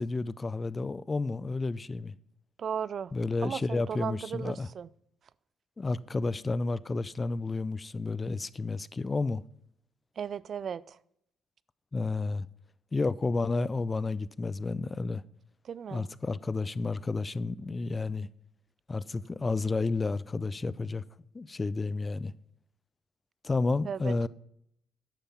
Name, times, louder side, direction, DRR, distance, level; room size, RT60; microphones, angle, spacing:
voice 1, 0.0-2.1 3.1-4.7 5.8-9.4 11.9-12.5 12.9-15.2 15.9-18.3 18.9-21.0 21.3-22.3 23.4-24.3, left 3 dB, 25° left, 0.4 m, -31 dB
voice 2, 2.6-3.1 3.4-4.9 10.2-10.8 15.7-16.1 23.9-24.3, right 7 dB, 55° right, 0.3 m, -36 dB
10.5 x 7.1 x 5.7 m
cardioid pair, 90°, 0 cm